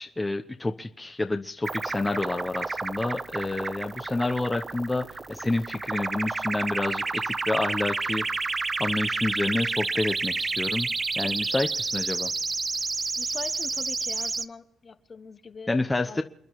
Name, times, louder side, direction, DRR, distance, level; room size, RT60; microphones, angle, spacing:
voice 1, 0.0-8.2 8.8-10.9 11.2-12.3 15.7-16.2, left 2 dB, 15° left, 0.9 m, -29 dB
sound 1, 1.6-14.4, right 3 dB, 30° right, 0.6 m, -30 dB
voice 2, 13.2-15.7 16.0-16.2, left 4 dB, 35° left, 1.2 m, -42 dB
29.0 x 10.0 x 4.7 m
cardioid pair, 90°, 0 cm